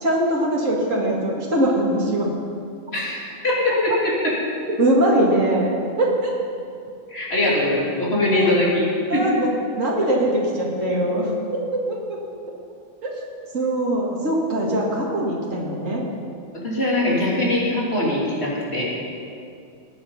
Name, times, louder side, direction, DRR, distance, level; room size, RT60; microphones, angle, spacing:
voice 1, 0.0-2.3 4.7-5.7 6.0-6.3 8.3-8.5 9.1-9.5 9.8-12.2 13.0-13.1 13.5-16.0, right 1 dB, 75° right, -3 dB, 2.4 m, -22 dB
voice 2, 2.9-4.3 7.1-9.3 16.6-18.8, left 1 dB, 50° left, -5 dB, 3.6 m, -22 dB
20.0 x 8.6 x 5.7 m, 2.4 s
omnidirectional pair, 1.3 m